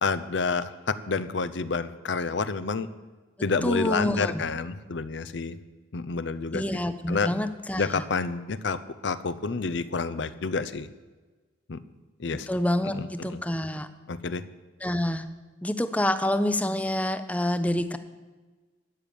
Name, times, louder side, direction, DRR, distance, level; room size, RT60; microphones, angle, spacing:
voice 1, 0.0-2.9 3.4-5.6 5.9-6.6 7.1-7.3 7.8-10.9 11.7-11.8 12.2-12.5 12.9-13.4 14.1-14.4, left 4 dB, 60° left, 13 dB, 0.6 m, -29 dB
voice 2, 3.6-4.4 6.5-8.0 12.5-13.9 14.8-15.3 15.6-18.0, left 1 dB, 5° left, 11 dB, 0.6 m, -27 dB
13.0 x 9.0 x 7.0 m, 1.3 s
head